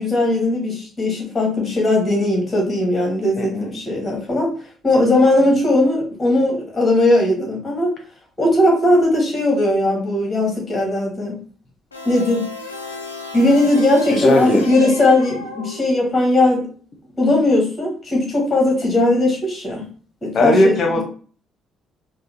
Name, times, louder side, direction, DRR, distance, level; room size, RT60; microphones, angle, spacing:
voice 1, 0.0-4.5 4.8-7.9 8.4-11.4 12.0-12.5 13.3-16.7 17.2-19.8 20.2-20.7, left 1 dB, 25° left, -1 dB, 1.7 m, -18 dB
voice 2, 3.4-3.7 14.1-14.6 20.3-21.0, left 1 dB, 50° left, 3 dB, 1.0 m, -17 dB
sound 1, 11.9-16.2, left 2 dB, 85° left, 0.5 m, -34 dB
4.7 x 2.2 x 3.0 m, 0.41 s
figure-of-eight pair, 45°, 0 cm